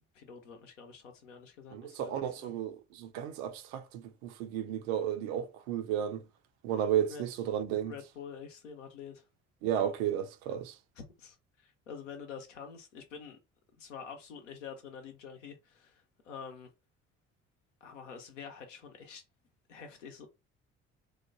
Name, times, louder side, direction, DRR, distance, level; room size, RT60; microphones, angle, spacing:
voice 1, 0.1-2.5 7.1-7.3 7.8-9.3 11.0-13.4 13.8-16.7 17.8-19.2 19.7-20.3, left 6 dB, 75° left, 0.7 m, -47 dB
voice 2, 1.7-6.2 6.6-7.9 9.6-10.8, right 10 dB, 60° right, 0.5 m, -33 dB
3.1 x 2.1 x 2.6 m
figure-of-eight pair, 50°, 37 cm